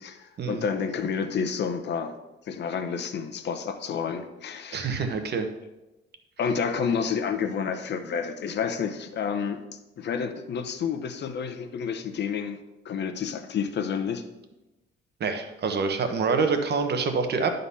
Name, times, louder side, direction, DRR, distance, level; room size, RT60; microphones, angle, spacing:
voice 1, 0.0-2.2 2.5-5.0 6.4-9.6 10.0-12.6 12.8-14.2, left 6 dB, 60° left, 8 dB, 0.9 m, -29 dB
voice 2, 4.7-5.5 15.2-17.5, right 5 dB, 55° right, 6 dB, 1.1 m, -26 dB
11.0 x 4.0 x 5.5 m, 1.0 s
cardioid pair, 90°, 20 cm